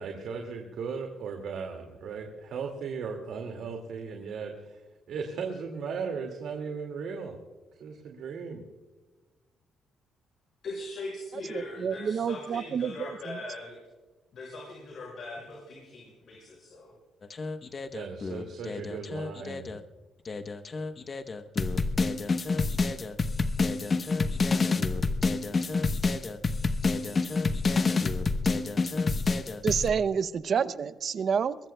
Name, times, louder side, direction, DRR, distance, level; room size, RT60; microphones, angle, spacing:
voice 1, 0.0-4.8 5.1-7.4 7.8-8.6 17.9-19.8, right 5 dB, 70° right, 3 dB, 2.1 m, -37 dB
voice 2, 10.6-13.8 14.3-16.9, left 2 dB, 60° left, -2 dB, 5.8 m, -40 dB
voice 3, 11.5-13.4 29.6-31.6, right 7 dB, 55° right, 14 dB, 0.6 m, -29 dB
sound 1, 17.2-19.8 20.3-29.9, left 3 dB, 40° left, 1.0 m, -28 dB
22.0 x 22.0 x 2.3 m, 1.3 s
cardioid pair, 90°, 0 cm